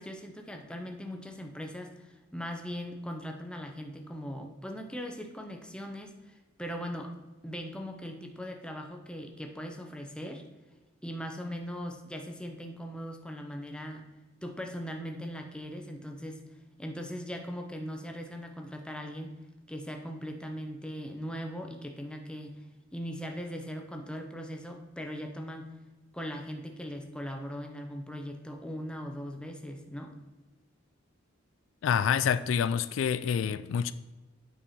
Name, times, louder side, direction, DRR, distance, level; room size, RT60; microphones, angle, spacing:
voice 1, 0.0-7.1 7.4-10.4 11.0-14.0 14.4-16.4 16.8-19.4 19.7-22.6 22.9-25.7 26.1-30.2, equal, 5° left, 3 dB, 0.7 m, -39 dB
voice 2, 31.8-33.9, left 7 dB, 70° left, 14 dB, 0.3 m, -27 dB
8.7 x 5.4 x 4.2 m, 1.2 s
head